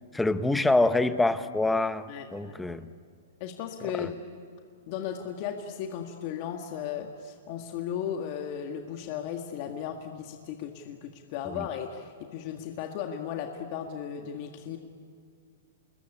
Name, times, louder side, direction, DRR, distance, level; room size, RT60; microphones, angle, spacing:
voice 1, 0.1-2.9 4.0-4.1 11.6-11.7, left 2 dB, 5° left, 11 dB, 0.9 m, -26 dB
voice 2, 2.1-2.6 3.4-4.2 4.9-14.8, left 9 dB, 40° left, 4 dB, 1.8 m, -36 dB
27.5 x 21.5 x 9.9 m, 2.2 s
hypercardioid pair, 150°, 0 cm